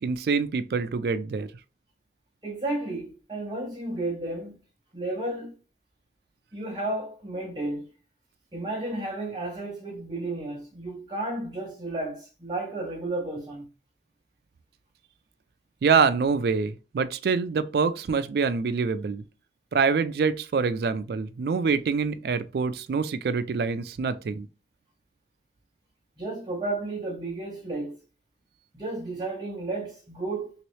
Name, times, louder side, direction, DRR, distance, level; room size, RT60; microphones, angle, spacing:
voice 1, 0.0-1.5 15.8-19.2 19.7-24.5, right 5 dB, 60° right, 0.3 m, -25 dB
voice 2, 2.4-4.6 4.9-5.5 6.5-7.9 8.5-13.7 26.2-28.0 28.7-30.5, right 2 dB, 25° right, 0.7 m, -32 dB
3.0 x 2.9 x 3.1 m
head